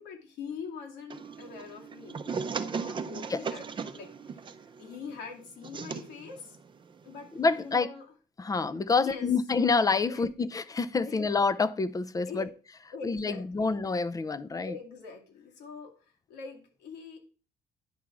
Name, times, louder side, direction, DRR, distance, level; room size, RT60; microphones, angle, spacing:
voice 1, 0.0-3.6 3.9-4.5 4.8-6.6 7.0-8.0 8.9-9.3 10.1-10.2 11.1-11.2 12.3-12.4 12.9-13.8 14.6-15.9 16.3-17.2, left 5 dB, 90° left, 2.4 m, -43 dB
sound 1, 1.1-7.8, right 5 dB, 30° right, 0.6 m, -38 dB
voice 2, 7.3-7.9 8.4-12.4 13.0-14.8, left 4 dB, 20° left, 0.5 m, -27 dB
10.5 x 3.6 x 6.1 m
cardioid pair, 110°, 17 cm